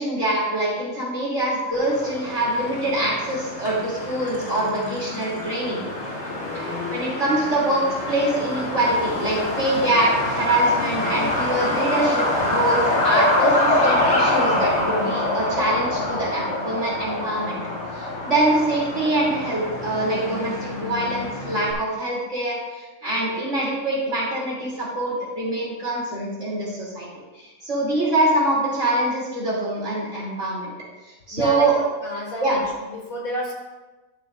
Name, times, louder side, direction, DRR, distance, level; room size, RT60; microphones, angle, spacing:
voice 1, 0.0-5.8 6.5-17.6 17.9-27.1 27.3-30.7 31.3-31.7 32.4-32.6, right 1 dB, 55° right, -5 dB, 3.4 m, -24 dB
Truck, 1.7-21.7, left 1 dB, 50° left, 2.0 m, -26 dB
voice 2, 6.4-7.1 31.3-31.7 32.0-33.5, equal, 70° left, -1 dB, 2.4 m, -31 dB
13.0 x 8.3 x 2.5 m, 1.2 s
omnidirectional pair, 1.5 m